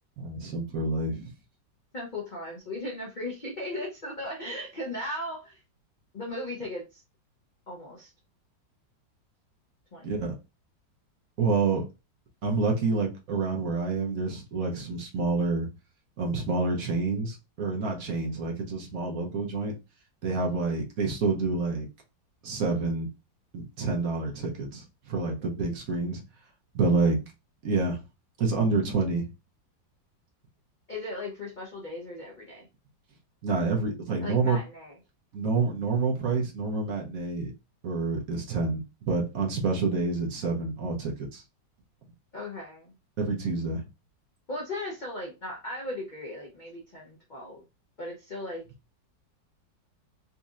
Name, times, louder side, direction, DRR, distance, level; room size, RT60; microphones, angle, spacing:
voice 1, 0.2-1.3 10.0-10.3 11.4-11.8 12.4-15.7 16.2-19.7 20.2-21.9 22.4-23.1 23.5-26.2 26.7-27.2 27.6-28.0 28.4-29.3 33.4-34.6 35.3-37.5 37.8-41.4 43.2-43.9, right 3 dB, 60° right, -1 dB, 1.1 m, -28 dB
voice 2, 1.9-5.6 6.1-7.0 7.7-8.1 9.9-10.1 30.9-32.7 34.2-34.9 42.3-42.9 44.5-47.6 48.0-48.6, left 1 dB, 75° left, -2 dB, 0.4 m, -37 dB
4.1 x 2.7 x 2.4 m, 0.27 s
omnidirectional pair, 2.0 m